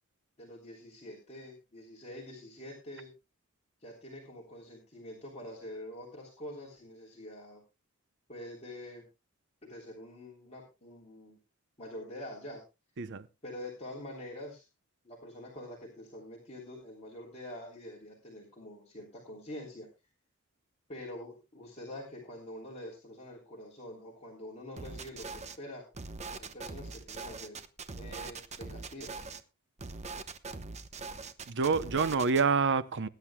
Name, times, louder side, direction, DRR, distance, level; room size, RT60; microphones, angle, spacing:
voice 1, 0.4-3.1 3.8-7.6 8.3-9.0 9.6-11.4 11.8-12.6 13.4-14.7 15.0-19.9 20.9-25.8 26.4-27.6 27.9-29.2, left 1 dB, 30° left, 3.2 m, -46 dB
sound 1, 24.8-25.6 25.9-29.4 29.8-32.4, right 3 dB, 30° right, 0.9 m, -42 dB
voice 2, 31.5-33.1, right 5 dB, 55° right, 0.7 m, -27 dB
22.0 x 10.5 x 2.2 m
head